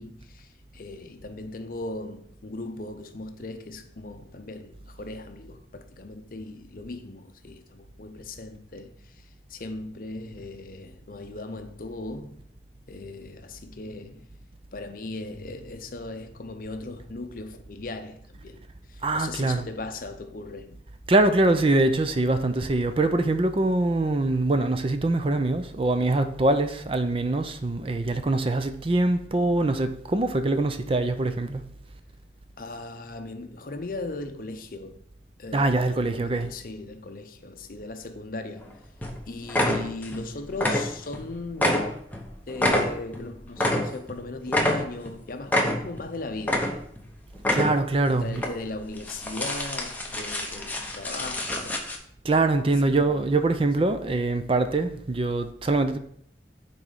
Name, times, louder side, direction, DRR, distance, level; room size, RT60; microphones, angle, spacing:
voice 1, 0.0-12.4 12.9-14.3 14.7-18.6 18.9-20.8 32.6-35.0 35.4-38.8 39.3-42.1 42.5-46.9 48.1-51.8 53.0-53.3, left 2 dB, 50° left, 0.6 m, -38 dB
voice 2, 19.0-19.7 21.1-31.6 35.5-36.5 47.5-48.4 52.2-56.0, right 2 dB, 30° right, 0.5 m, -23 dB
sound 1, 38.6-38.7 39.0-39.2 39.5-40.2 40.5-41.2 41.5-44.2 44.5-45.1 45.5-46.1 46.4-47.0 47.4-47.9 48.3-48.5 49.0-52.0, left 1 dB, 10° left, 0.8 m, -26 dB
6.1 x 4.2 x 5.0 m
head